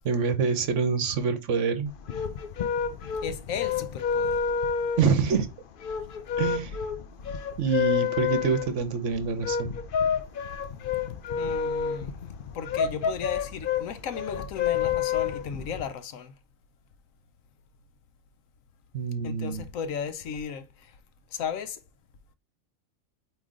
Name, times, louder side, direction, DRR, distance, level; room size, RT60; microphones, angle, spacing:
voice 1, 0.0-1.9 5.0-5.5 6.4-6.8 7.6-9.8 18.9-19.6, right 6 dB, 65° right, 1.2 m, -26 dB
sound 1, 1.9-15.8, left 7 dB, 55° left, 0.6 m, -29 dB
voice 2, 3.2-4.4 11.4-12.2 12.5-16.3 19.2-20.9 21.3-21.8, left 7 dB, 80° left, 1.1 m, -35 dB
8.4 x 3.0 x 3.7 m
omnidirectional pair, 1.4 m